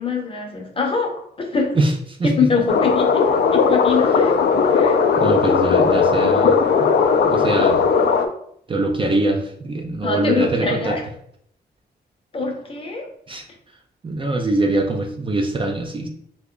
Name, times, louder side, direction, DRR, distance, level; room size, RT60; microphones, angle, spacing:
voice 1, 0.0-1.8 2.2-5.0 10.0-11.0 12.3-13.1, left 4 dB, 30° left, 1 dB, 0.7 m, -24 dB
sound 1, 2.7-8.3, left 5 dB, 65° left, 0.4 m, -17 dB
voice 2, 5.2-6.6 7.2-7.8 8.7-11.0 13.3-13.4 14.0-16.1, right 2 dB, 30° right, 2 dB, 0.4 m, -22 dB
2.9 x 2.2 x 3.7 m, 0.67 s
wide cardioid pair, 120°, 18 cm